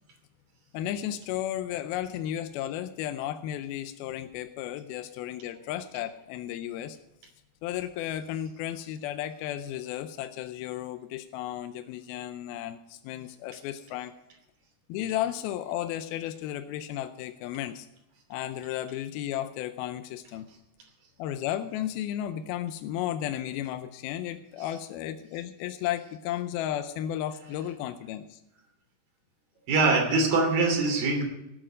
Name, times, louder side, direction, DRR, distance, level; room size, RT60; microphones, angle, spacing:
voice 1, 0.7-7.0 7.6-14.1 14.9-17.9 18.3-20.5 21.2-28.4, left 12 dB, 80° left, 9 dB, 2.3 m, -34 dB
voice 2, 29.7-31.2, right 3 dB, 60° right, 2 dB, 4.5 m, -23 dB
18.0 x 8.9 x 5.0 m, 0.89 s
omnidirectional pair, 4.8 m